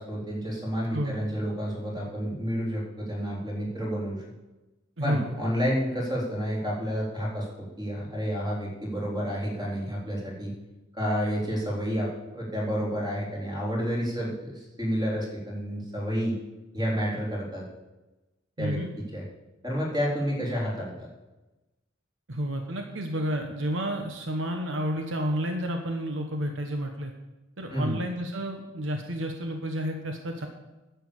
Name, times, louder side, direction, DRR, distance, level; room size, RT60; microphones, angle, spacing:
voice 1, 0.0-4.2 5.0-10.5 10.9-16.4 16.7-17.7 18.6-18.8 19.1-19.2 19.6-21.1 27.7-28.0, equal, 20° right, -3 dB, 3.6 m, -30 dB
voice 2, 0.9-1.2 5.0-5.4 18.6-18.9 22.3-27.1 27.6-30.5, equal, 70° right, 4 dB, 1.2 m, -31 dB
10.0 x 7.0 x 8.5 m, 1.1 s
head